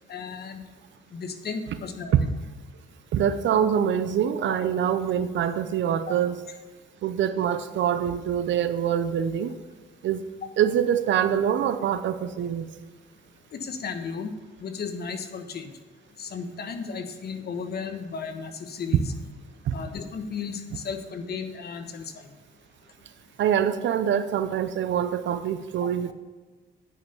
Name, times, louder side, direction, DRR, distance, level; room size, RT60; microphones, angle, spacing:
voice 1, 0.1-0.6 1.1-2.1 6.1-6.2 13.5-14.3 14.6-15.7 16.2-19.0 19.7-22.0, left 5 dB, 55° left, 7 dB, 1.2 m, -34 dB
voice 2, 3.1-6.4 7.0-9.6 10.0-10.2 10.6-12.6 19.7-19.8 23.4-26.1, right 9 dB, 70° right, 11 dB, 0.7 m, -24 dB
9.5 x 5.7 x 6.8 m, 1.3 s
cardioid pair, 90°, 20 cm